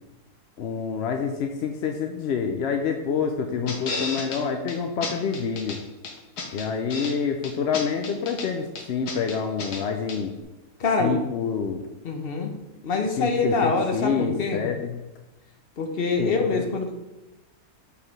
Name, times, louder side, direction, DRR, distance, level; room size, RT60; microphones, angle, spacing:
voice 1, 0.6-5.8 6.5-10.3 11.0-11.9 13.2-14.9 16.2-16.6, left 6 dB, 65° left, 4 dB, 0.6 m, -27 dB
sound 1, 3.7-4.4 4.7-4.8 5.0-5.8 6.0-7.1 7.4-8.5 8.8-9.8 10.1-10.2, left 4 dB, 80° left, 1.7 m, -32 dB
voice 2, 10.8-11.2 12.0-12.5 12.8-14.6 15.8-16.9, left 3 dB, 45° left, 4 dB, 1.0 m, -25 dB
5.2 x 4.8 x 5.8 m, 1.0 s
omnidirectional pair, 1.7 m